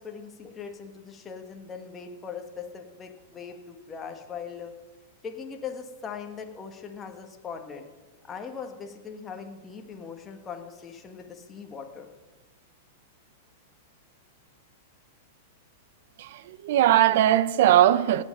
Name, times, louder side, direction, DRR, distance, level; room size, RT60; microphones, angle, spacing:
voice 1, 0.0-4.7 5.2-7.9 8.2-12.1, left 6 dB, 20° left, 1.4 m, -40 dB
voice 2, 16.2-18.2, right 12 dB, 65° right, 0.6 m, -20 dB
17.5 x 7.5 x 5.4 m
hypercardioid pair, 130°, 0 cm